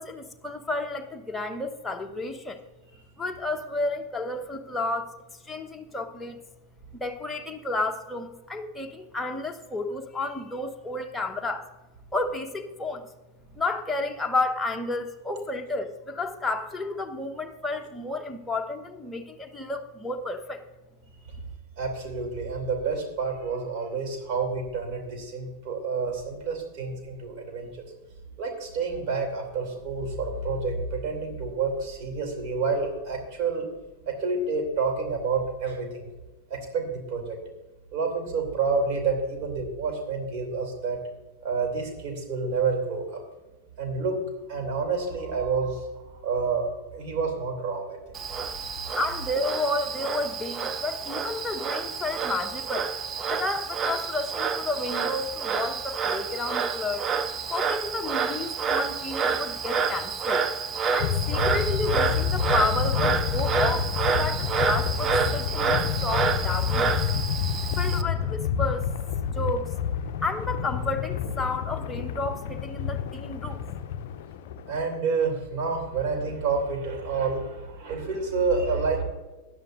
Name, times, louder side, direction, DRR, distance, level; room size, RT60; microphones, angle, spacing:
voice 1, 0.0-2.6 3.2-5.2 5.4-6.4 7.0-11.7 12.1-13.1 13.5-20.6 49.0-53.0 53.3-57.1 57.5-60.4 60.9-67.0 67.8-68.9 69.3-69.7 70.2-73.6, left 2 dB, 10° left, 3 dB, 1.0 m, -31 dB
voice 2, 21.8-27.8 28.4-33.7 34.1-36.1 36.5-37.4 37.9-41.0 41.4-43.2 43.8-44.2 44.5-45.9 46.2-48.0 74.7-79.0, right 4 dB, 45° right, 3 dB, 2.7 m, -29 dB
Frog, 48.2-68.0, right 5 dB, 25° right, 0.7 m, -29 dB
sound 1, 61.0-75.0, left 8 dB, 50° left, 0.6 m, -29 dB
16.0 x 10.5 x 2.5 m, 1.2 s
figure-of-eight pair, 90°, 0 cm